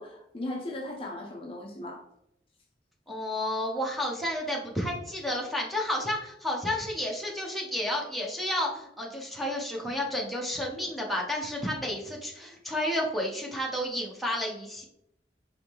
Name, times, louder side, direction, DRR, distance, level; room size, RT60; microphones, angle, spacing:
voice 1, 0.0-2.1, left 1 dB, 30° left, 0 dB, 0.6 m, -37 dB
voice 2, 3.1-14.8, left 1 dB, ahead, -3 dB, 0.9 m, -31 dB
4.7 x 3.1 x 3.5 m, 0.78 s
head